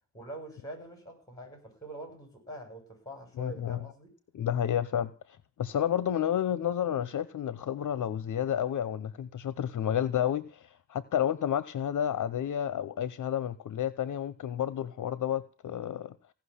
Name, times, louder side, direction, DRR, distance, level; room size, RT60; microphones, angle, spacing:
voice 1, 0.1-4.1, right 1 dB, 10° left, 7.0 m, -44 dB
voice 2, 3.4-3.8 4.3-5.1 5.6-16.1, left 10 dB, 60° left, 0.8 m, -30 dB
17.0 x 6.0 x 9.8 m
wide cardioid pair, 120°, 35 cm